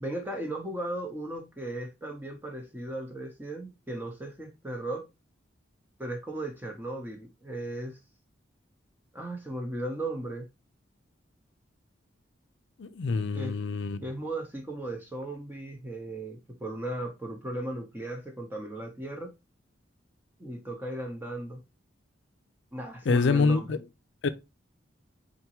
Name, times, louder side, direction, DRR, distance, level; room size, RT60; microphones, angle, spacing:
voice 1, 0.0-5.0 6.0-8.0 9.1-10.5 13.3-13.5 14.0-19.3 20.4-21.6 22.7-23.8, right 1 dB, 10° right, 0.6 m, -36 dB
voice 2, 12.8-14.0 23.1-23.8 24.2-24.3, left 4 dB, 70° left, 0.4 m, -25 dB
3.9 x 3.5 x 2.9 m
head